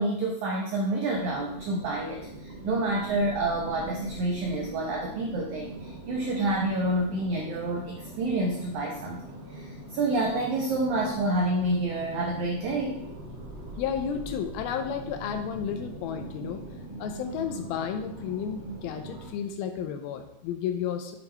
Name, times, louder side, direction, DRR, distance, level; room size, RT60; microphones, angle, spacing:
voice 1, 0.0-9.2 9.5-12.9, right 2 dB, 80° right, 0 dB, 1.7 m, -28 dB
sound 1, 1.1-19.3, right 1 dB, 35° right, 2.3 m, -42 dB
voice 2, 13.8-16.6 17.0-21.2, left 8 dB, 80° left, 7 dB, 2.3 m, -32 dB
7.1 x 6.6 x 3.3 m, 0.88 s
omnidirectional pair, 4.6 m